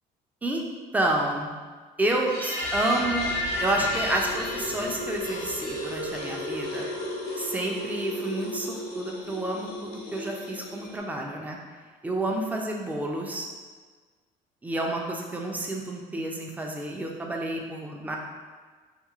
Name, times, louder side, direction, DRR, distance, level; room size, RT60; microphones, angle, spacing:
voice 1, 0.9-1.6 2.0-6.9 7.4-11.6 12.0-13.5 14.6-18.2, right 1 dB, 10° right, 0 dB, 0.3 m, -29 dB
sound 1, 2.2-11.0, left 1 dB, 90° left, 0.8 m, -32 dB
3.0 x 2.6 x 2.4 m, 1.5 s
cardioid pair, 120°, 16 cm